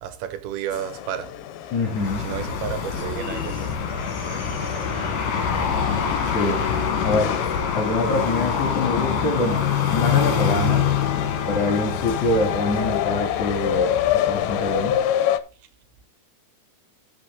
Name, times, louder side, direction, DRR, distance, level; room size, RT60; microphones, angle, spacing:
voice 1, 0.0-1.4 2.1-3.8, right 10 dB, 85° right, 2.9 m, -32 dB
sound 1, 0.7-15.4, left 11 dB, 85° left, 2.7 m, -29 dB
voice 2, 1.7-2.3 6.3-6.6 7.0-7.4 7.7-10.9 11.5-15.0, left 2 dB, 50° left, 4.3 m, -25 dB
sound 2, 1.8-15.1, left 7 dB, 70° left, 3.5 m, -25 dB
Breathing, 2.9-5.5, equal, 30° left, 4.3 m, -38 dB
15.0 x 5.6 x 4.0 m
omnidirectional pair, 4.4 m